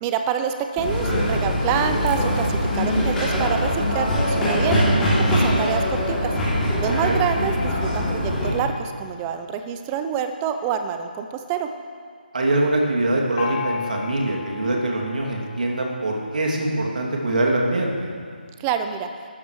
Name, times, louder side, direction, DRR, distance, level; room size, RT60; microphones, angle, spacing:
voice 1, 0.0-4.8 5.3-6.3 6.8-11.7 18.6-19.1, right 8 dB, 15° right, 7 dB, 0.6 m, -27 dB
sound 1, 0.8-8.5, equal, 5° left, 3.0 m, -22 dB
voice 2, 12.3-18.1, right 2 dB, 55° right, -1 dB, 2.5 m, -23 dB
Gong, 13.4-16.9, left 7 dB, 30° left, 1.4 m, -35 dB
19.5 x 13.5 x 3.2 m, 2.1 s
figure-of-eight pair, 155°, 5 cm